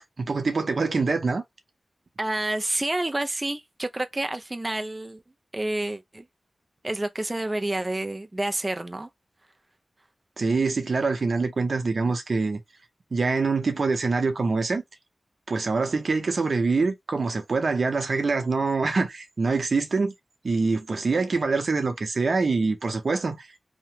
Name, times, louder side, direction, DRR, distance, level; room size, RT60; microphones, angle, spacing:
voice 1, 0.2-1.4 10.4-12.6 13.1-14.8 15.5-20.1 20.4-23.5, right 4 dB, 60° right, 0.7 m, -25 dB
voice 2, 2.2-5.2 5.5-6.3 6.8-9.1, right 1 dB, 20° right, 0.3 m, -29 dB
2.9 x 2.1 x 3.2 m
wide cardioid pair, 110°, 0 cm